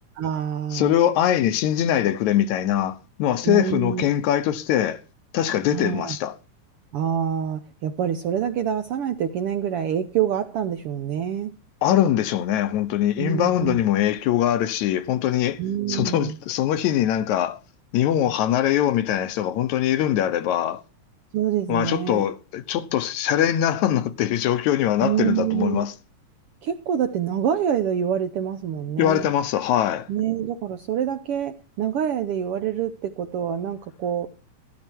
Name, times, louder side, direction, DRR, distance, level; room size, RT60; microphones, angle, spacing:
voice 1, 0.2-0.9 3.4-4.0 5.7-6.2 6.9-11.5 13.2-13.8 15.6-16.4 21.3-22.2 25.0-25.8 26.6-29.3 30.1-34.3, right 9 dB, 70° right, 1.4 m, -26 dB
voice 2, 0.7-5.0 5.3-6.3 11.8-15.6 15.9-17.6 17.9-20.8 21.7-25.9 29.0-30.1, left 11 dB, 75° left, 2.1 m, -22 dB
13.5 x 13.0 x 4.5 m
omnidirectional pair, 3.5 m